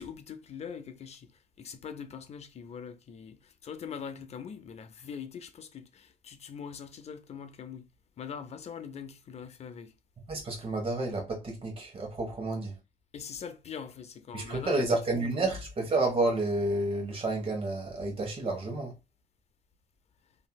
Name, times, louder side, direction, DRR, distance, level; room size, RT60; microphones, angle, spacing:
voice 1, 0.0-7.9 8.2-10.0 13.1-15.5, left 7 dB, 40° left, 0.5 m, -43 dB
voice 2, 10.3-12.8 14.3-19.0, right 2 dB, 35° right, 1.3 m, -30 dB
3.0 x 2.7 x 2.3 m
cardioid pair, 110°, 17 cm